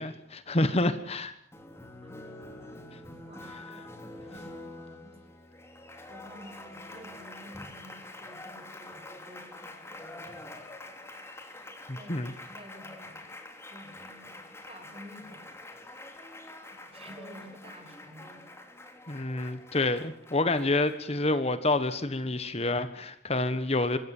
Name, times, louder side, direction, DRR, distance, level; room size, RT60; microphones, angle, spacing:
voice 1, 0.0-1.3 11.9-12.3 19.1-24.0, left 2 dB, 35° left, 11 dB, 1.4 m, -28 dB
Applause, 1.5-21.2, left 2 dB, 15° left, 3.4 m, -46 dB
voice 2, 2.0-2.4 3.3-3.9 4.3-5.2 6.1-10.4 10.9-11.2 11.9-12.2 12.5-13.3 13.7-16.0 16.7-18.4, equal, 35° right, 6 dB, 5.7 m, -51 dB
25.5 x 22.5 x 7.3 m, 0.67 s
head